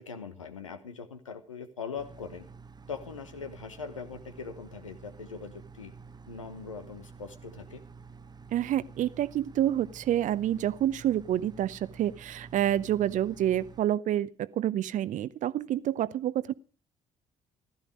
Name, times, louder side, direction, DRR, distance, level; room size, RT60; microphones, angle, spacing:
voice 1, 0.0-2.5 2.9-5.9 6.3-7.8 12.7-12.9, left 5 dB, 85° left, 9 dB, 1.2 m, -41 dB
sound 1, 2.0-13.8, right 5 dB, 25° right, 0.9 m, -50 dB
voice 2, 8.5-16.5, right 12 dB, 50° right, 18 dB, 0.7 m, -28 dB
15.0 x 13.0 x 5.0 m, 0.39 s
figure-of-eight pair, 45°, 16 cm